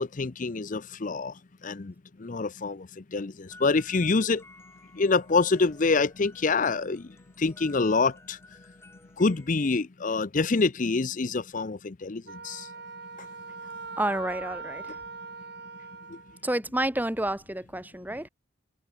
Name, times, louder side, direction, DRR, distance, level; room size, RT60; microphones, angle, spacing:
voice 1, 0.0-1.3 1.6-1.9 2.2-4.4 4.9-7.1 7.4-8.4 9.2-12.7, left 4 dB, 40° left, 0.6 m, -26 dB
sound 1, 3.5-9.8, left 2 dB, 15° left, 7.4 m, -54 dB
Wind instrument woodwind instrument, 12.3-16.4, right 4 dB, 55° right, 3.2 m, -41 dB
voice 2, 14.0-15.0 16.4-18.3, right 1 dB, 10° right, 1.4 m, -29 dB
head